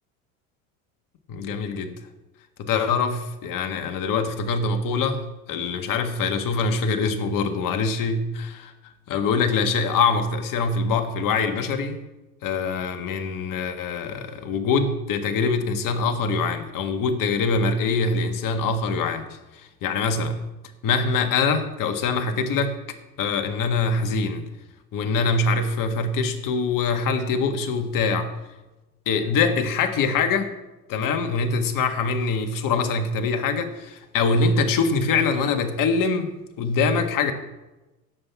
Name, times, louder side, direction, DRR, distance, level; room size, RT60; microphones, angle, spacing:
voice 1, 1.3-1.9 2.6-8.7 9.1-12.0 12.4-19.3 19.5-20.4 20.8-22.8 23.2-24.5 24.9-28.3 29.0-30.5 30.9-37.3, left 4 dB, 45° left, 7 dB, 1.6 m, -24 dB
16.5 x 7.5 x 3.5 m, 1.0 s
hypercardioid pair, 75°, 44 cm